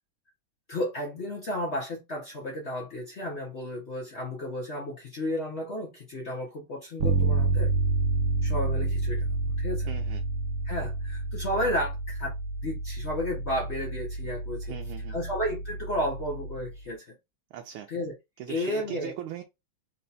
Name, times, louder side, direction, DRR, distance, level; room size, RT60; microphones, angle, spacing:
voice 1, 0.7-7.7 8.4-9.9 10.6-12.3 12.6-14.7 15.1-17.1 17.9-18.1 18.5-19.1, left 1 dB, 55° left, 0.7 m, -32 dB
Bass guitar, 7.0-16.7, right 3 dB, 65° right, 1.2 m, -29 dB
voice 2, 9.9-10.2 14.7-15.2 17.5-17.9 18.4-19.4, right 10 dB, 90° right, 1.5 m, -39 dB
4.1 x 2.2 x 4.0 m
omnidirectional pair, 2.2 m